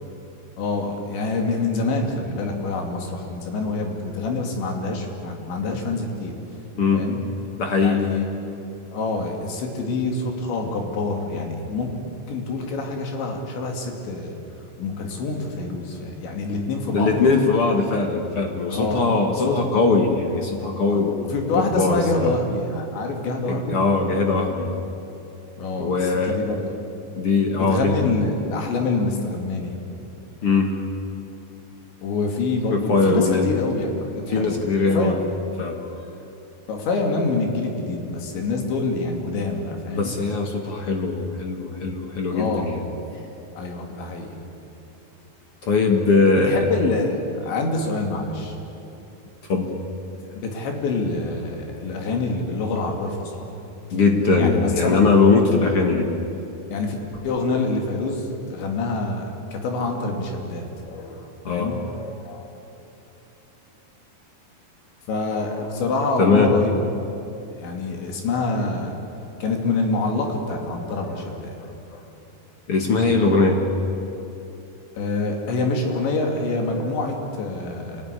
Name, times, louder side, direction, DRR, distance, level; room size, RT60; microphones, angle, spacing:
voice 1, 0.6-6.3 6.9-7.2 7.8-8.3 8.9-11.9 12.3-14.4 14.8-17.2 18.7-19.1 19.4-19.6 20.9-23.8 25.6-26.7 27.6-29.8 32.0-34.6 34.9-35.1 36.7-40.1 42.3-43.0 43.6-44.4 46.5-48.6 50.3-53.5 54.4-55.1 56.7-57.0 57.2-62.5 65.1-66.8 67.5-68.9 69.4-72.0 75.0-78.0, left 3 dB, 85° left, 2 dB, 5.0 m, -26 dB
voice 2, 6.8-7.1 7.6-8.1 16.9-22.3 23.5-24.7 25.8-26.4 27.2-28.0 30.4-30.8 32.7-33.5 34.3-35.2 35.6-35.9 39.8-42.8 45.6-46.6 49.5-49.7 53.9-56.1 61.4-61.8 66.2-66.6 72.7-73.7, left 4 dB, 55° left, 3 dB, 1.5 m, -20 dB
26.5 x 18.0 x 10.0 m, 2.9 s
omnidirectional pair, 5.0 m